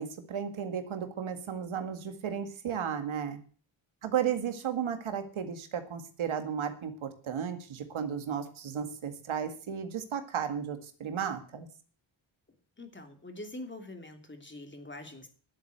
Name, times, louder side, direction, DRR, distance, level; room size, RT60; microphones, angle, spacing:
voice 1, 0.0-3.4 4.0-11.7, right 8 dB, 80° right, 8 dB, 2.0 m, -34 dB
voice 2, 12.8-15.3, left 1 dB, 25° left, 5 dB, 2.9 m, -44 dB
11.5 x 8.0 x 8.0 m, 0.41 s
cardioid pair, 80°, 48 cm